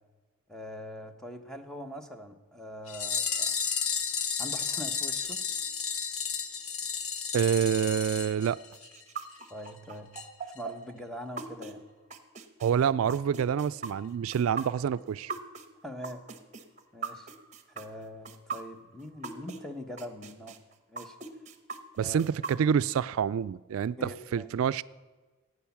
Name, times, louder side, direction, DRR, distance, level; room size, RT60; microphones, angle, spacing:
voice 1, 0.5-3.5 4.4-5.4 9.5-10.1 10.5-11.8 15.8-16.2 16.9-17.3 17.7-20.6 20.9-21.2 22.0-22.2 24.0-24.5, equal, ahead, 1.0 m, -42 dB
sound 1, 2.9-9.0 9.3-9.4 9.7-9.8 10.2-10.3 10.6-10.7, left 6 dB, 80° left, 1.1 m, -32 dB
voice 2, 7.3-8.6 12.6-15.3 22.0-24.8, right 8 dB, 75° right, 0.3 m, -27 dB
sound 2, 8.7-19.6 20.0-22.9, right 4 dB, 35° right, 1.0 m, -40 dB
15.0 x 9.4 x 7.1 m
head